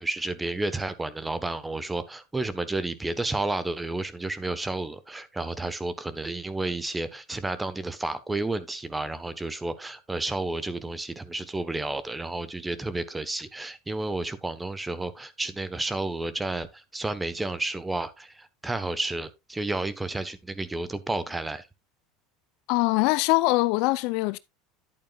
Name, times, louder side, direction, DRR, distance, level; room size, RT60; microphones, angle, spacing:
voice 1, 0.0-21.7, right 2 dB, 10° right, 1.1 m, -31 dB
voice 2, 22.7-24.4, left 21 dB, 65° left, 0.5 m, -23 dB
11.0 x 8.6 x 2.4 m
supercardioid pair, 120°, 0 cm